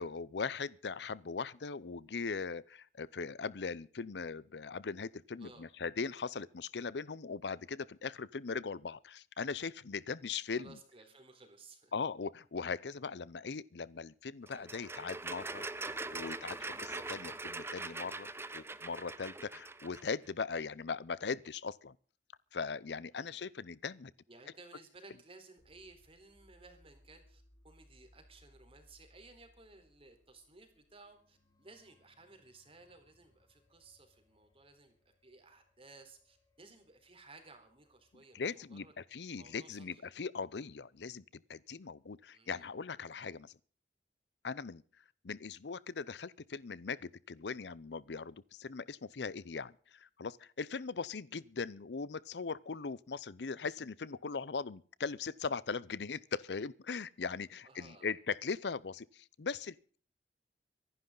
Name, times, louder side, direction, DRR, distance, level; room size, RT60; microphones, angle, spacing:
voice 1, 0.0-10.8 11.9-15.6 16.1-21.9 22.5-24.1 38.3-41.2 41.5-43.5 44.4-44.8 45.2-60.0, left 5 dB, 70° left, 0.6 m, -40 dB
voice 2, 5.4-5.7 10.6-11.9 23.1-23.5 24.3-34.9 35.2-38.9 39.4-40.1 42.3-42.7 57.6-58.1, right 3 dB, 35° right, 4.0 m, -58 dB
sound 1, 14.5-20.1, right 2 dB, 15° right, 0.8 m, -42 dB
sound 2, 25.6-38.2, left 1 dB, 20° left, 2.6 m, -68 dB
24.5 x 11.0 x 3.9 m
head